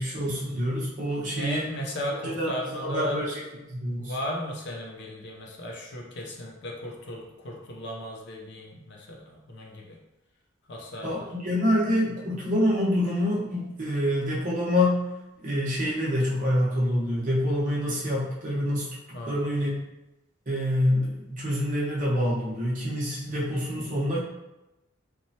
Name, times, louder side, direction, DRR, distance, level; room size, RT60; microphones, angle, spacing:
voice 1, 0.0-1.7 2.3-3.4 3.7-4.2 11.0-15.0 15.4-18.9 19.3-19.8 20.5-24.2, left 1 dB, 40° right, -6 dB, 0.8 m, -26 dB
voice 2, 1.2-3.2 4.0-10.0 10.7-11.3 19.1-19.5 23.3-23.4, equal, 60° left, -1 dB, 0.5 m, -36 dB
3.0 x 2.1 x 2.7 m, 0.95 s
head